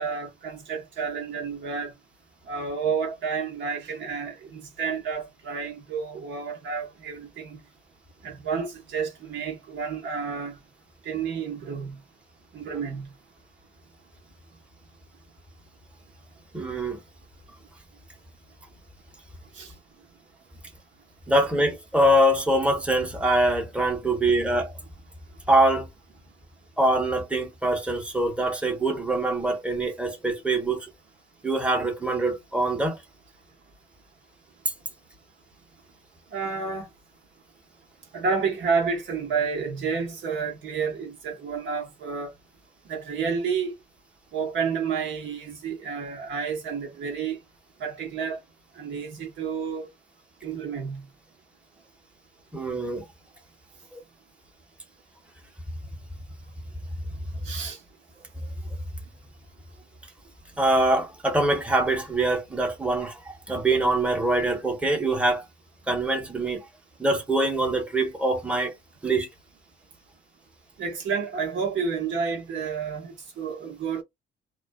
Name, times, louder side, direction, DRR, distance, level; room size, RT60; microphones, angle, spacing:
voice 1, 0.0-1.9 2.5-7.6 8.2-10.5 11.0-12.0 12.5-13.1 19.5-19.7 36.3-36.9 38.1-42.3 42.9-43.7 44.3-47.4 47.8-48.4 48.7-49.9 50.4-51.0 57.4-57.8 70.8-74.0, right 5 dB, 75° right, 1.0 m, -30 dB
voice 2, 16.5-17.0 21.3-24.7 25.5-25.9 26.8-30.9 31.4-33.0 52.5-53.0 53.9-54.0 57.3-57.4 60.6-65.4 65.9-66.6 67.0-68.7 69.0-69.3, right 1 dB, 5° right, 0.9 m, -24 dB
2.4 x 2.4 x 2.2 m
cardioid pair, 90°, 20 cm